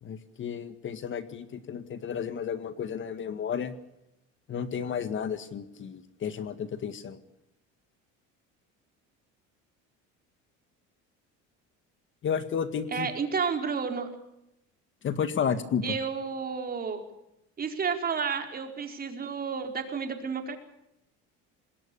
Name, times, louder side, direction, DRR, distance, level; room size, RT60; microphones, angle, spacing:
voice 1, 0.0-3.7 4.5-7.2 12.2-13.1 15.0-15.8, left 7 dB, 40° left, 11 dB, 1.8 m, -32 dB
voice 2, 12.9-14.1 15.8-17.0 17.6-20.6, right 6 dB, 30° right, 5 dB, 4.6 m, -31 dB
27.0 x 20.5 x 7.0 m, 0.85 s
cardioid pair, 135°, 30 cm